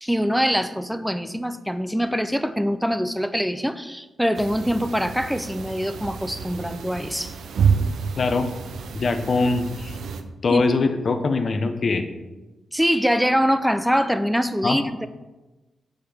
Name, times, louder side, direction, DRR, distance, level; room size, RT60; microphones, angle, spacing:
voice 1, 0.0-7.3 10.5-10.6 12.7-15.1, equal, ahead, 11 dB, 0.4 m, -23 dB
sound 1, 4.3-10.2, right 6 dB, 80° right, 0.6 m, -28 dB
voice 2, 8.2-8.5 8.9-10.0 10.4-12.0 14.6-14.8, left 3 dB, 50° left, 7 dB, 0.8 m, -22 dB
7.5 x 6.6 x 3.5 m, 1.1 s
cardioid pair, 85°, 0 cm